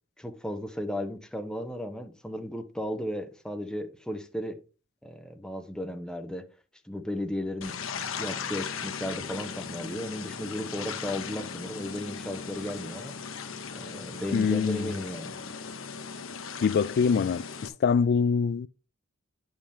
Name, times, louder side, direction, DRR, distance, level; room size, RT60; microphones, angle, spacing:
voice 1, 0.2-4.6 5.0-6.4 6.8-7.8 8.2-13.1 13.7-15.4, left 1 dB, 5° left, 0.9 m, -35 dB
sound 1, 7.6-17.7, left 6 dB, 75° left, 0.9 m, -38 dB
voice 2, 14.3-14.9 16.6-18.7, left 6 dB, 50° left, 0.3 m, -24 dB
9.9 x 5.4 x 3.5 m
head